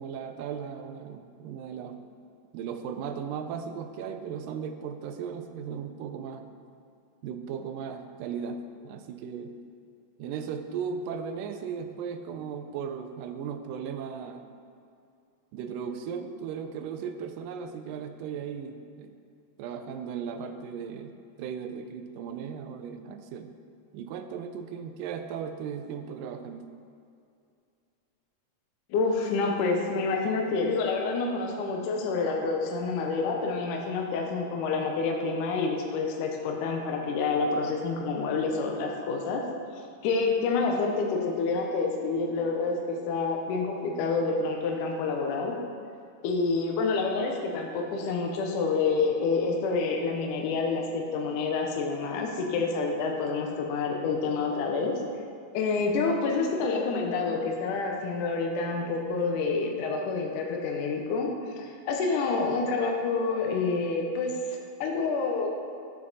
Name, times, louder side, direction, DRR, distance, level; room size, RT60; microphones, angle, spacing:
voice 1, 0.0-2.0 2.5-6.5 7.2-9.5 10.2-14.5 15.5-19.1 19.6-23.5 23.9-26.7, right 7 dB, 85° right, 8 dB, 2.2 m, -37 dB
voice 2, 28.9-39.4 40.0-45.6 46.2-54.9 55.5-61.3 61.6-65.5, left 4 dB, 75° left, 1 dB, 2.2 m, -28 dB
8.7 x 6.3 x 4.0 m, 2.4 s
omnidirectional pair, 3.9 m